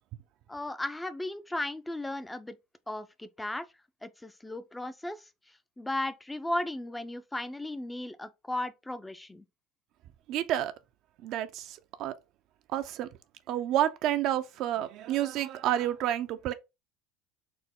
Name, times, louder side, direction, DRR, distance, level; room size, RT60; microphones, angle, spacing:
voice 1, 0.5-2.6 2.9-3.6 4.0-5.3 5.8-9.4, left 1 dB, 10° left, 0.4 m, -35 dB
voice 2, 10.3-10.7 11.2-12.1 12.7-13.1 13.5-16.5, right 12 dB, 60° right, 0.4 m, -29 dB
4.3 x 2.0 x 3.5 m
supercardioid pair, 90°, 0 cm